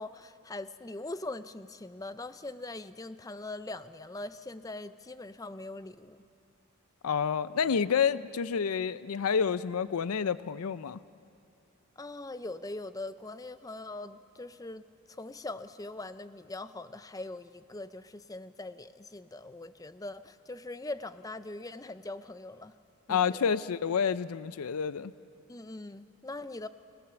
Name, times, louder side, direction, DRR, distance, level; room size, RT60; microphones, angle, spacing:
voice 1, 0.0-6.2 12.0-14.8 15.1-22.7 23.1-23.4 25.5-26.7, left 2 dB, 15° left, 13 dB, 0.5 m, -41 dB
voice 2, 7.0-11.0 23.1-25.1, left 6 dB, 80° left, 16 dB, 0.5 m, -29 dB
29.5 x 17.5 x 7.0 m, 2.5 s
head